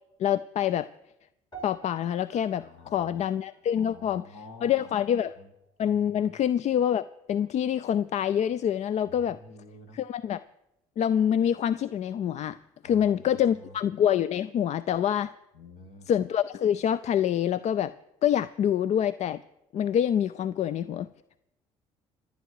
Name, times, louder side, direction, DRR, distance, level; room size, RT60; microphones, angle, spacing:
voice 1, 0.2-0.9 1.6-5.4 5.8-9.4 9.9-10.4 11.0-12.6 12.8-15.3 16.1-17.9 18.2-19.4 19.7-21.1, left 9 dB, 55° left, 17 dB, 0.4 m, -26 dB
sound 1, 1.5-5.9 6.2-6.6 7.2-7.3, right 4 dB, 30° left, 3.0 m, -52 dB
voice 2, 2.6-3.0 3.8-4.8 5.4-5.5 5.9-6.0 9.1-10.0 12.8-13.0 13.5-13.7 15.5-16.1, left 3 dB, 70° left, 6 dB, 2.1 m, -49 dB
26.0 x 9.3 x 4.8 m, 0.88 s
hypercardioid pair, 60°, 14 cm